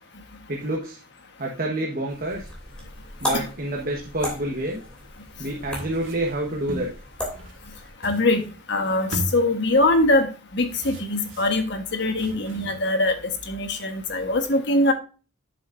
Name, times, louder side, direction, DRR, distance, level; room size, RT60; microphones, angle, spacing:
voice 1, 0.5-1.0 1.4-2.5 3.2-4.8 5.4-6.9, right 1 dB, 45° right, -1 dB, 1.3 m, -28 dB
sound 1, 2.1-7.9, left 1 dB, 5° left, 2.9 m, -36 dB
sound 2, 5.4-7.0 7.3-8.7 9.0-10.0 10.6-13.0 13.4-13.8, right 1 dB, 80° right, 2.1 m, -37 dB
voice 2, 8.0-8.4 8.7-13.2 13.5-14.9, left 2 dB, 60° left, 6 dB, 1.4 m, -22 dB
8.9 x 7.1 x 2.6 m, 0.35 s
head